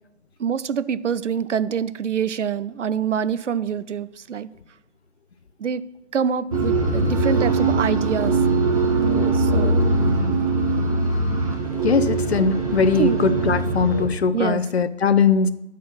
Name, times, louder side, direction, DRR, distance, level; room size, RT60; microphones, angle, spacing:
voice 1, 0.4-4.5 5.6-5.8 6.1-8.4 9.3-9.8 12.8-13.2 14.3-14.6, right 7 dB, 90° right, 16 dB, 0.6 m, -25 dB
sound 1, 6.5-14.1, right 3 dB, 30° right, 1.2 m, -21 dB
voice 2, 11.8-15.5, left 5 dB, 65° left, 13 dB, 0.6 m, -20 dB
10.0 x 4.2 x 6.3 m, 0.90 s
hypercardioid pair, 170°, 35 cm